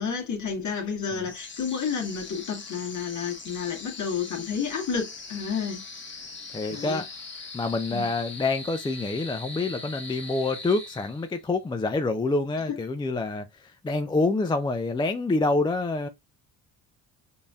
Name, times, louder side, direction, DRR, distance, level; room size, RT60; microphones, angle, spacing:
voice 1, 0.0-5.8 6.7-7.0 7.9-8.1 12.7-12.8, left 6 dB, 45° left, 1.4 m, -30 dB
sound 1, 1.2-11.5, left 3 dB, 30° left, 1.2 m, -41 dB
voice 2, 6.5-7.1 7.5-16.1, left 3 dB, 10° left, 0.4 m, -27 dB
5.3 x 2.7 x 2.3 m
supercardioid pair, 80°, 40 cm